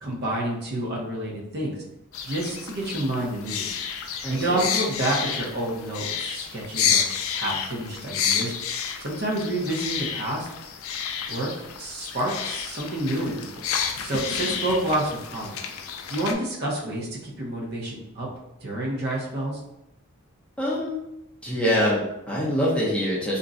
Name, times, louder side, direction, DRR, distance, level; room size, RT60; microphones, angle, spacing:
voice 1, 0.0-1.8 2.2-3.7 4.3-7.0 7.3-8.5 9.0-10.5 11.3-11.5 11.8-13.6 14.0-15.6 16.1-18.3 18.6-19.6, right 1 dB, 50° right, -3 dB, 0.7 m, -28 dB
sound 1, 2.1-16.3, left 7 dB, 70° left, 0.3 m, -30 dB
voice 2, 4.2-4.6 20.6-21.0 21.4-23.4, equal, 5° left, -7 dB, 0.6 m, -24 dB
2.5 x 2.1 x 3.7 m, 0.85 s
head